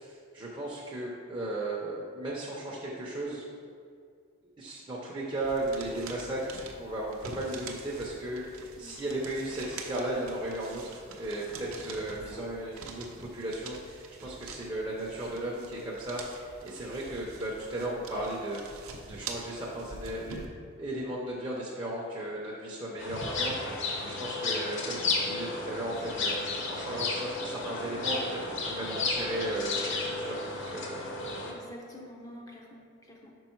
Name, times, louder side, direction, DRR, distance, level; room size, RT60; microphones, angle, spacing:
voice 1, 0.0-3.4 4.6-20.4 20.8-31.0, right 1 dB, 20° right, -5 dB, 0.6 m, -36 dB
sound 1, 5.4-20.5, right 4 dB, 75° right, 0.7 m, -46 dB
voice 2, 8.8-9.4 12.2-12.4 31.4-33.3, left 1 dB, 15° left, -1 dB, 0.5 m, -49 dB
sound 2, 23.0-31.5, left 3 dB, 55° left, 0.8 m, -33 dB
5.3 x 5.1 x 4.5 m, 2.2 s
head